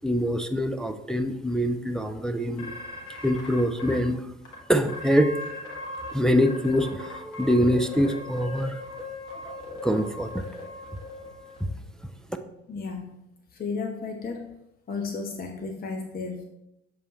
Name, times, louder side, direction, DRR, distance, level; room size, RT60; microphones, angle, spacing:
voice 1, 0.0-2.7 3.2-4.3 4.7-5.3 6.1-8.8 9.5-9.6 9.8-10.4 11.6-11.7, equal, ahead, 6 dB, 0.4 m, -24 dB
sound 1, 2.6-4.0 4.4-4.5 4.9-6.1 6.4-11.6, left 2 dB, 65° left, 1.6 m, -38 dB
voice 2, 12.7-13.2 13.5-14.6 14.9-16.4, left 4 dB, 25° left, 3 dB, 0.8 m, -33 dB
6.9 x 3.9 x 4.3 m, 0.86 s
figure-of-eight pair, 50°, 35 cm